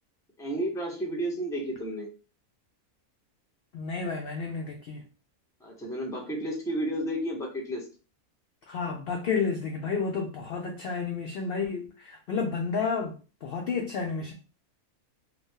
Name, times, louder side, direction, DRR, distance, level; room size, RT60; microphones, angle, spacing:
voice 1, 0.4-2.1 5.6-7.9, right 1 dB, 5° left, 0.4 m, -32 dB
voice 2, 3.7-5.0 8.7-13.1 13.4-14.3, left 5 dB, 75° left, 0.5 m, -31 dB
2.7 x 2.4 x 3.6 m
omnidirectional pair, 1.5 m